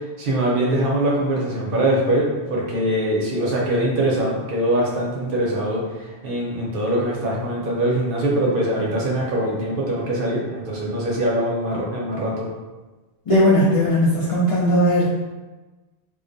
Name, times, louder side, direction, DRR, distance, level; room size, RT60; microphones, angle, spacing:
voice 1, 0.2-12.5, right 1 dB, 60° right, -3 dB, 0.7 m, -22 dB
voice 2, 13.3-15.1, equal, 55° left, -8 dB, 0.3 m, -17 dB
2.2 x 2.2 x 2.5 m, 1.2 s
omnidirectional pair, 1.1 m